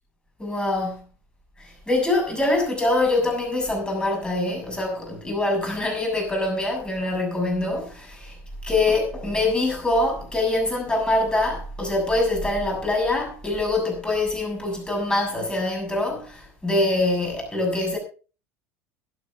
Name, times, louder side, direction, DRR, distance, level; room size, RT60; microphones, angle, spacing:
voice 1, 0.4-1.0 1.6-8.4 8.6-18.0, left 2 dB, 10° left, 7.1 m, -24 dB
22.0 x 8.5 x 3.5 m
figure-of-eight pair, 70°, 8 cm